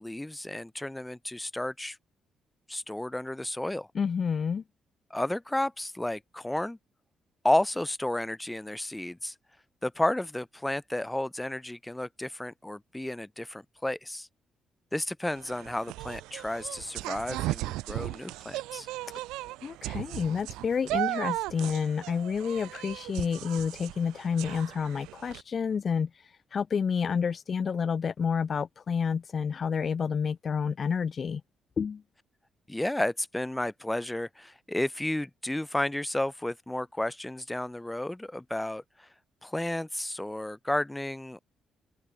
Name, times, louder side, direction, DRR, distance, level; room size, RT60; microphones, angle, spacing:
voice 1, 0.0-2.0 2.7-3.9 5.1-6.8 7.4-9.3 9.8-14.3 14.9-18.9 32.7-38.8 39.4-41.4, left 1 dB, 10° left, 1.0 m, -32 dB
voice 2, 3.9-4.6 19.6-26.1 26.5-31.4 31.8-32.0, left 6 dB, 50° left, 0.9 m, -29 dB
sound 1, 15.3-25.4, right 18 dB, 90° right, 3.4 m, -36 dB
open air
supercardioid pair, 60°, 0 cm